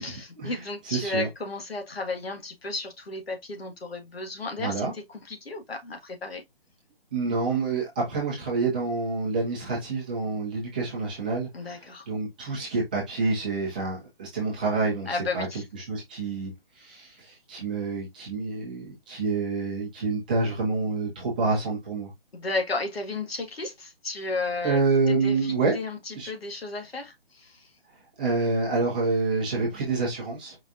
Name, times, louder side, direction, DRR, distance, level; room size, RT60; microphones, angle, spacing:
voice 1, 0.0-6.4 11.5-12.1 15.1-15.6 22.3-24.8 25.1-27.7, left 3 dB, 85° left, 1.7 m, -33 dB
voice 2, 0.8-1.3 4.6-4.9 7.1-15.5 15.7-22.1 24.6-25.7 26.1-26.3 28.2-30.6, right 3 dB, 10° right, 0.7 m, -27 dB
4.9 x 4.0 x 2.5 m
hypercardioid pair, 170°, 29 cm